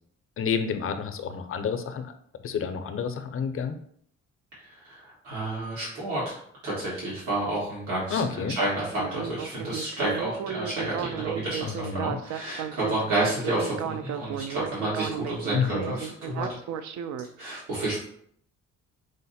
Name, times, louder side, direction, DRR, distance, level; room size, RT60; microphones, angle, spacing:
voice 1, 0.4-2.1 2.4-3.8 8.1-8.6 11.6-12.2 15.5-16.0, left 6 dB, 45° left, 8 dB, 0.5 m, -29 dB
voice 2, 4.8-16.6 17.4-18.0, right 1 dB, 90° right, -8 dB, 1.7 m, -30 dB
Speech synthesizer, 8.9-17.3, right 9 dB, 70° right, 0.4 m, -34 dB
4.9 x 2.1 x 4.1 m, 0.65 s
cardioid pair, 90°, 30 cm